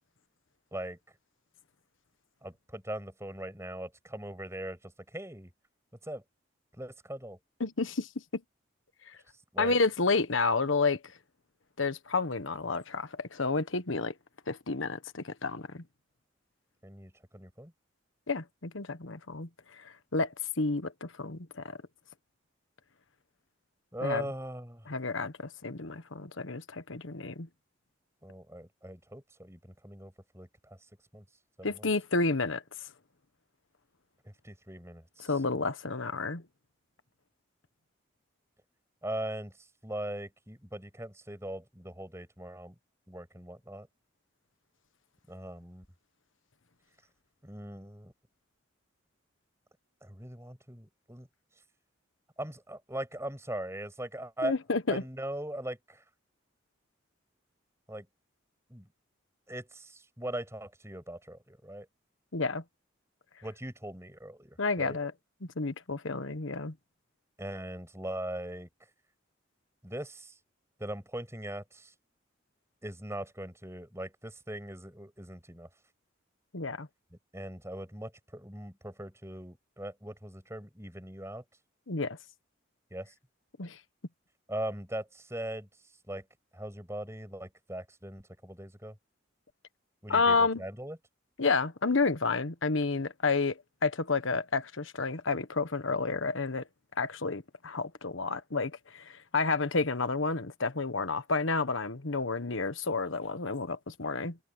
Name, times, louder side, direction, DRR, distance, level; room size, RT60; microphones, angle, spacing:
voice 1, 2.4-5.5 6.0-6.2 6.8-7.4 9.5-9.8 16.8-17.7 23.9-24.9 28.2-30.8 31.1-31.2 31.6-31.9 34.2-35.3 39.0-42.8 43.1-43.9 45.3-45.9 47.4-48.1 50.0-51.3 52.4-54.5 54.9-56.0 57.9-58.1 58.7-58.9 59.5-61.9 63.4-65.0 67.4-68.7 69.8-70.4 70.8-71.9 72.8-75.7 77.3-81.4 82.9-83.1 84.5-85.7 86.1-86.2 86.5-89.0 90.0-91.0, right 1 dB, 15° right, 7.2 m, -40 dB
voice 2, 7.6-8.4 9.6-11.0 11.8-14.1 14.5-15.8 18.3-21.8 24.0-24.2 24.9-27.5 31.6-32.6 35.2-36.4 54.4-55.0 62.3-62.6 64.6-65.1 65.6-66.7 76.5-76.9 81.9-82.2 83.6-83.8 90.1-90.6 91.4-96.6 97.0-104.4, left 4 dB, 75° left, 1.3 m, -30 dB
head